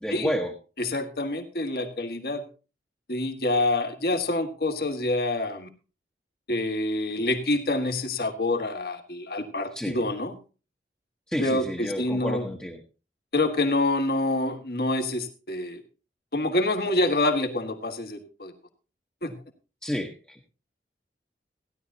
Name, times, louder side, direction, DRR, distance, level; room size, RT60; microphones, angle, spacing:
voice 1, 0.0-0.5 9.8-10.0 11.3-12.8 19.8-20.5, equal, 5° left, -1 dB, 1.2 m, -30 dB
voice 2, 0.8-2.4 3.1-5.7 6.5-10.4 11.4-12.5 13.3-15.8 16.3-18.5 19.2-19.3, left 2 dB, 55° left, 5 dB, 1.7 m, -27 dB
16.0 x 11.0 x 2.8 m, 0.33 s
head